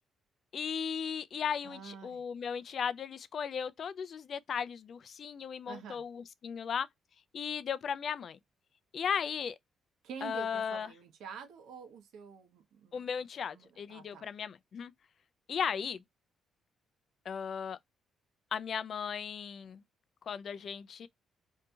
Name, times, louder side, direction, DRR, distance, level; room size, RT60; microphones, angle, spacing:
voice 1, 0.5-6.9 7.3-8.4 8.9-9.6 10.2-10.9 12.9-14.9 15.5-16.0 17.3-17.8 18.5-19.8 20.3-21.1, left 7 dB, 55° left, 0.3 m, -36 dB
voice 2, 1.6-2.2 5.7-6.0 10.0-13.1 13.5-14.3, right 6 dB, 80° right, 0.8 m, -47 dB
2.7 x 2.3 x 2.6 m
cardioid pair, 90°, 0 cm